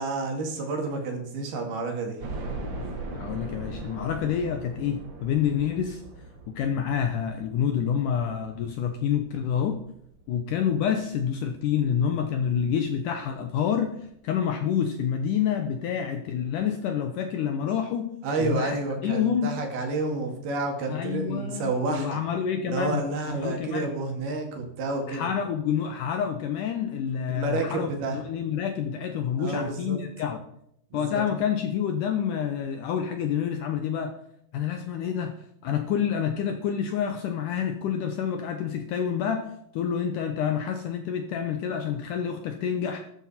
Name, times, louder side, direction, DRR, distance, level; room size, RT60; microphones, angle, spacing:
voice 1, 0.0-2.2 18.2-22.2 22.6-25.3 27.3-28.2 29.4-30.0 30.9-31.2, right 3 dB, 75° right, 3 dB, 4.1 m, -30 dB
sound 1, 2.2-11.1 11.6-11.7 12.1-12.2 13.4-13.5 13.7-13.8, right 2 dB, 40° right, 1.9 m, -39 dB
voice 2, 3.1-6.0 6.6-9.8 10.3-18.1 18.4-18.8 19.0-19.5 20.9-23.0 23.4-23.9 25.1-30.4 30.9-34.2 34.5-35.3 35.6-39.5 39.7-43.0, left 8 dB, 75° left, 7 dB, 2.0 m, -28 dB
13.5 x 12.0 x 4.2 m, 0.75 s
omnidirectional pair, 4.6 m